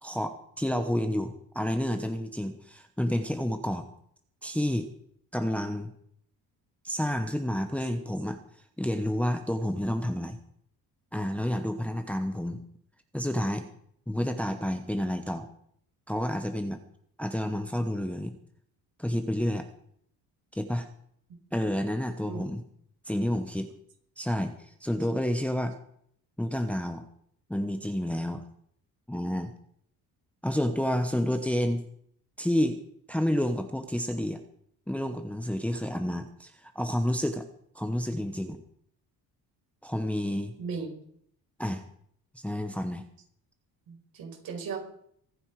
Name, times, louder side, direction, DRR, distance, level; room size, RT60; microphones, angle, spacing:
voice 1, 0.0-3.9 4.4-4.9 5.3-5.9 6.8-8.4 8.8-10.4 11.1-12.6 13.1-13.7 14.1-15.5 16.1-16.8 17.2-18.3 19.0-19.6 20.5-20.9 21.5-22.6 23.1-23.7 24.2-24.5 24.8-25.8 26.4-27.0 27.5-28.4 29.1-29.5 30.4-31.8 32.4-32.8 33.1-34.4 34.9-37.4 37.7-38.6 39.8-40.5 41.6-41.8 42.4-43.1, left 1 dB, 5° left, 6 dB, 1.0 m, -29 dB
voice 2, 40.6-40.9 43.9-44.8, right 5 dB, 65° right, 2 dB, 5.2 m, -36 dB
23.5 x 9.7 x 4.8 m, 0.65 s
cardioid pair, 155°, 39 cm